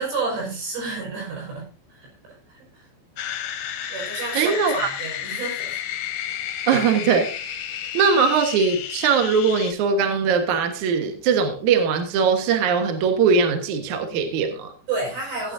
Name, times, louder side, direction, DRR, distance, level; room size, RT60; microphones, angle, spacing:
voice 1, 0.0-2.1 2.5-2.8 3.9-5.8 14.9-15.5, right 3 dB, 80° right, -2 dB, 7.4 m, -30 dB
sound 1, 3.2-9.7, left 10 dB, 75° left, 1.9 m, -31 dB
voice 2, 4.3-4.9 6.7-7.5 7.9-14.7, right 5 dB, 60° right, 5 dB, 2.3 m, -21 dB
16.5 x 9.6 x 2.7 m, 0.37 s
omnidirectional pair, 4.9 m